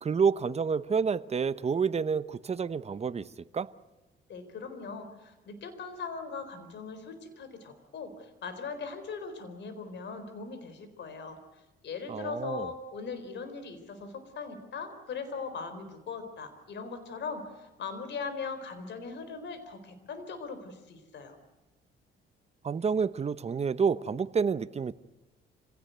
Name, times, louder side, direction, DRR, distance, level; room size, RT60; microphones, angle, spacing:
voice 1, 0.0-3.3 3.5-3.7 12.1-12.7 22.6-24.9, right 6 dB, 30° right, 15 dB, 0.9 m, -29 dB
voice 2, 4.3-21.4, left 5 dB, 65° left, 10 dB, 4.2 m, -40 dB
26.0 x 17.0 x 9.3 m, 1.1 s
cardioid pair, 90°, 20 cm